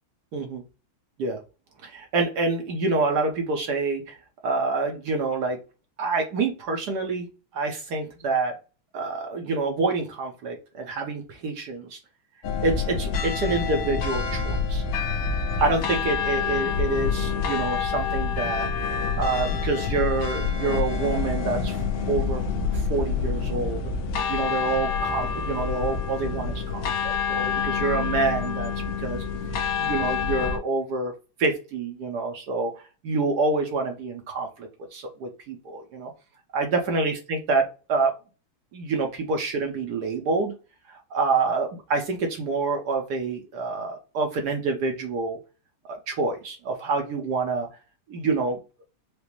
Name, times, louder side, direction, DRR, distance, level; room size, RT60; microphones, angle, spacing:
voice 1, 0.3-0.6 1.2-1.4 1.8-4.2 4.4-5.6 6.0-7.3 7.5-8.5 8.9-12.0 12.6-14.8 15.6-21.8 22.1-22.4 22.7-23.8 24.3-28.7 29.0-29.2 29.5-31.1 31.4-32.7 33.0-36.1 36.5-37.6 37.9-38.1 38.7-40.5 40.9-45.4 46.1-47.7 48.1-48.6, right 3 dB, 65° right, 3 dB, 1.1 m, -27 dB
sound 1, 12.4-30.6, left 5 dB, 65° left, 1.2 m, -27 dB
5.0 x 2.0 x 2.9 m, 0.32 s
omnidirectional pair, 2.4 m